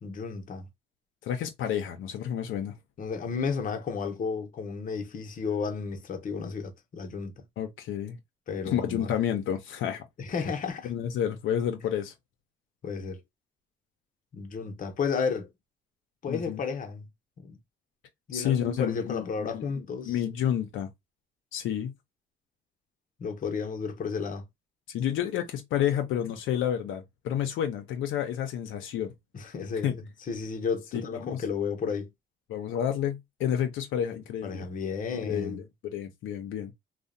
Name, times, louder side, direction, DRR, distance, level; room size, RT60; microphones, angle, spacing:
voice 1, 0.0-0.7 3.0-7.4 8.5-9.1 10.2-10.9 12.8-13.2 14.3-15.5 16.2-17.1 17.4-17.6 18.3-20.2 23.2-24.5 29.3-32.1 34.4-35.6, left 5 dB, 45° left, 0.7 m, -32 dB
voice 2, 1.2-2.7 7.6-8.2 8.7-10.0 10.8-12.1 16.3-16.6 18.3-20.9 21.5-21.9 24.9-29.1 29.8-29.9 30.9-31.4 32.5-34.7 35.2-36.7, left 10 dB, 80° left, 0.5 m, -30 dB
2.7 x 2.0 x 2.4 m
cardioid pair, 90°, 20 cm